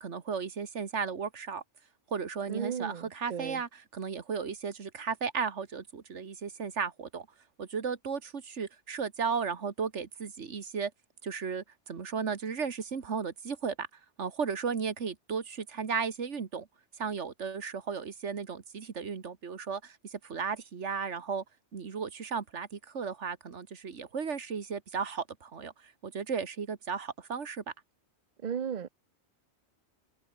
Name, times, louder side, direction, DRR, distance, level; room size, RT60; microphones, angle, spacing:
voice 1, 0.0-1.6 2.1-7.3 7.6-10.9 11.2-13.9 14.2-16.7 17.0-21.4 21.7-27.6, right 6 dB, 90° right, 1.9 m, -35 dB
voice 2, 2.5-3.6 28.4-28.9, right 7 dB, 45° right, 0.9 m, -35 dB
omnidirectional pair, 1.2 m